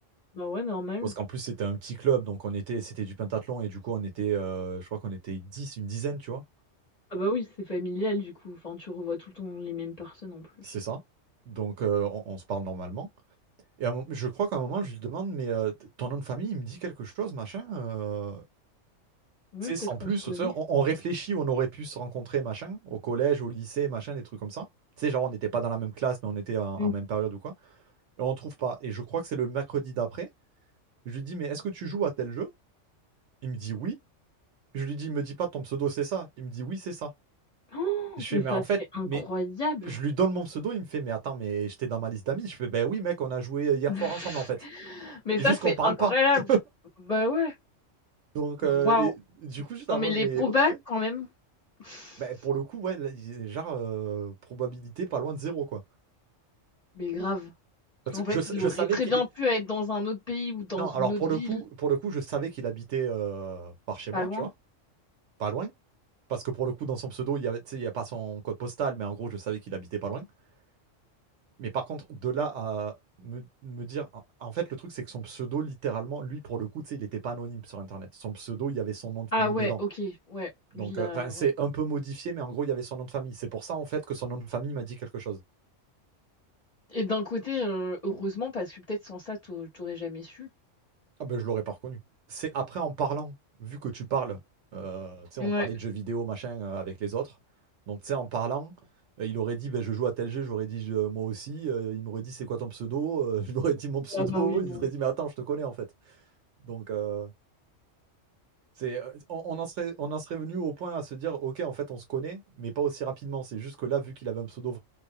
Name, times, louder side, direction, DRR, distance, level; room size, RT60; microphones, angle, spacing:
voice 1, 0.3-1.1 7.1-10.7 19.5-19.7 20.0-20.5 26.8-26.9 37.7-38.6 38.9-40.0 43.9-46.4 47.1-47.5 48.6-49.1 49.9-51.3 51.8-52.2 56.9-57.5 58.1-61.6 64.1-64.5 79.3-80.5 80.7-81.5 86.9-90.5 95.4-95.7 104.1-104.9, left 2 dB, 35° left, 0.9 m, -30 dB
voice 2, 1.0-6.4 10.6-11.0 11.5-13.1 13.8-18.4 19.6-24.7 25.0-27.5 28.2-30.3 31.1-32.5 33.4-34.0 34.7-37.1 38.2-39.2 39.8-44.6 45.4-46.1 46.5-46.6 48.3-49.1 49.4-50.8 52.2-55.8 58.1-59.2 60.8-64.5 65.4-65.7 66.3-70.3 71.6-79.8 80.7-85.4 91.2-92.0 92.3-93.3 93.6-94.4 94.7-97.3 97.9-98.7 99.2-106.1 106.6-107.3 108.8-114.8, right 7 dB, 75° right, 1.0 m, -31 dB
2.3 x 2.0 x 2.6 m
omnidirectional pair, 1.3 m